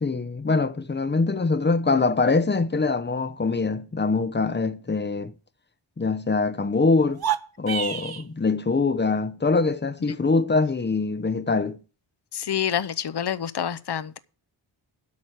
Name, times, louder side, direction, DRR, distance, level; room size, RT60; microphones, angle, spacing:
voice 1, 0.0-5.3 6.0-7.2 7.6-11.8, left 3 dB, 25° left, 0.9 m, -23 dB
sound 1, 7.1-8.3, right 9 dB, 55° right, 1.0 m, -28 dB
voice 2, 12.3-14.2, left 9 dB, 60° left, 0.9 m, -27 dB
12.5 x 6.2 x 7.5 m
wide cardioid pair, 115°, 46 cm